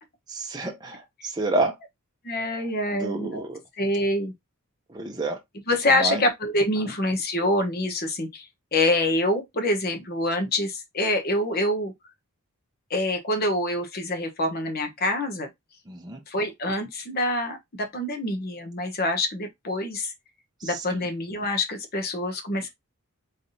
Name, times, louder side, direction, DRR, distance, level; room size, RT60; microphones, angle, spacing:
voice 1, 0.3-1.7 2.9-3.6 4.9-5.4 6.0-6.2 15.9-16.2 20.6-21.0, right 2 dB, 20° right, 0.6 m, -29 dB
voice 2, 2.2-3.4 3.8-4.3 5.7-11.9 12.9-15.5 16.3-20.1 20.6-22.7, left 1 dB, 45° left, 1.0 m, -26 dB
4.0 x 3.4 x 2.7 m
head